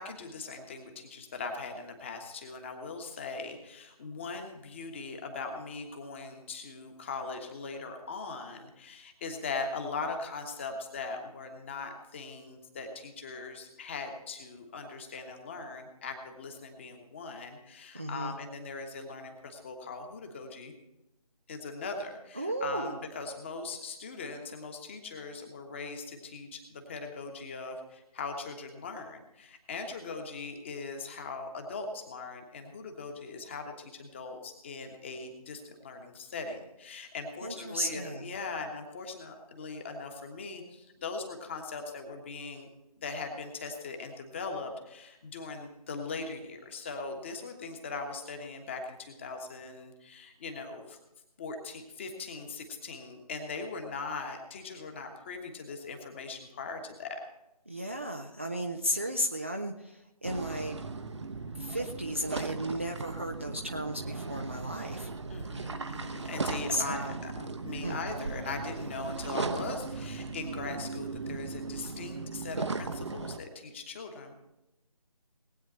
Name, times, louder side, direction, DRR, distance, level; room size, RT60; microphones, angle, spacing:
voice 1, 0.0-20.7 21.5-42.7 43.0-51.0 51.4-57.2 65.3-74.3, left 4 dB, 20° left, 4 dB, 1.3 m, -40 dB
voice 2, 17.9-18.3 22.4-23.0 37.4-38.3 57.7-60.8 61.5-65.1 66.7-67.2 67.8-68.0, equal, 20° right, 3 dB, 0.4 m, -34 dB
sound 1, 60.2-73.4, right 4 dB, 50° right, 0.8 m, -37 dB
19.0 x 9.2 x 4.3 m, 0.91 s
figure-of-eight pair, 160°, 19 cm